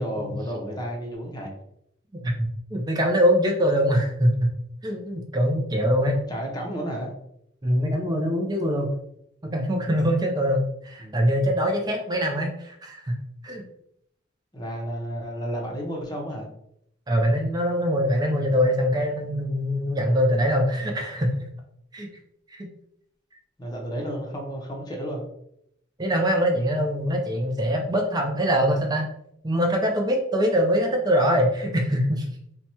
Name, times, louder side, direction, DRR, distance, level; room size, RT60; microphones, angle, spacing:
voice 1, 0.0-1.5 6.3-7.1 11.0-11.3 14.5-16.5 23.6-25.2, equal, 20° left, -1 dB, 0.7 m, -32 dB
voice 2, 2.1-4.5 4.8-6.2 7.6-8.9 9.4-13.2 13.4-13.7 17.1-21.4 21.9-22.1 22.5-22.7 26.0-29.0 29.4-32.3, equal, 20° right, 2 dB, 0.5 m, -23 dB
2.9 x 2.3 x 4.1 m, 0.75 s
head